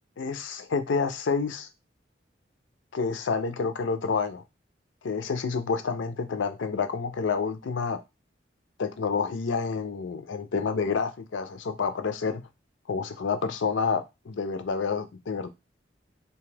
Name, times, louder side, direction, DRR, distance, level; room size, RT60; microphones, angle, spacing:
voice 1, 0.2-1.7 2.9-4.4 5.0-8.0 8.8-12.4 12.9-15.5, left 5 dB, 80° left, 9 dB, 0.5 m, -29 dB
2.8 x 2.3 x 3.2 m, 0.23 s
head